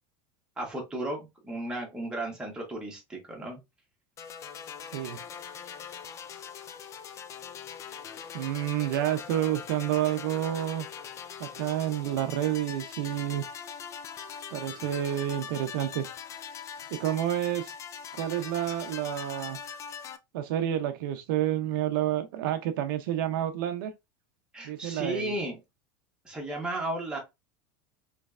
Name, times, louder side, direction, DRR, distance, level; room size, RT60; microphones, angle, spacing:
voice 1, 0.6-3.6 24.5-25.6 26.2-27.2, right 1 dB, 5° right, 1.3 m, -34 dB
sound 1, 4.2-20.2, left 7 dB, 25° left, 0.3 m, -42 dB
voice 2, 8.3-10.9 11.4-13.4 14.5-16.1 16.9-17.7 18.1-19.6 20.3-23.9 24.6-25.4, right 12 dB, 75° right, 0.5 m, -29 dB
3.2 x 3.2 x 2.4 m
supercardioid pair, 145°, 11 cm